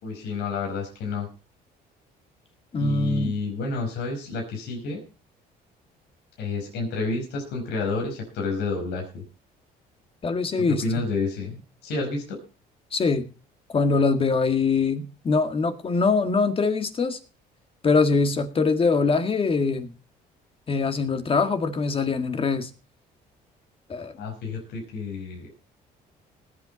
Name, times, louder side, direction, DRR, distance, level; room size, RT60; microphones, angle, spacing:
voice 1, 0.0-1.3 2.8-5.0 6.4-9.2 10.6-12.4 24.2-25.5, left 3 dB, 80° left, 1 dB, 5.1 m, -30 dB
voice 2, 2.7-3.4 10.2-10.8 12.9-13.3 13.7-17.2 17.8-19.9 20.7-22.7 23.9-24.1, left 4 dB, 35° left, 8 dB, 1.9 m, -23 dB
20.0 x 8.7 x 4.2 m, 0.34 s
cardioid pair, 110°, 17 cm